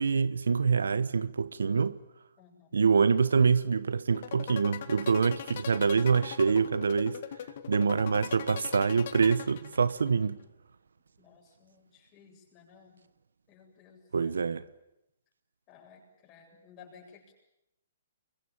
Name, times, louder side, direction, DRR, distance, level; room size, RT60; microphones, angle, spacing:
voice 1, 0.0-2.0 2.7-7.2 7.7-10.4 14.1-14.7, right 5 dB, 90° right, 1.1 m, -25 dB
voice 2, 2.4-2.8 11.2-13.1 13.5-14.5 15.7-17.3, left 6 dB, 25° left, 7.8 m, -56 dB
sound 1, 4.1-10.1, left 10 dB, 55° left, 2.1 m, -40 dB
26.0 x 23.0 x 8.8 m
hypercardioid pair, 150°, 0 cm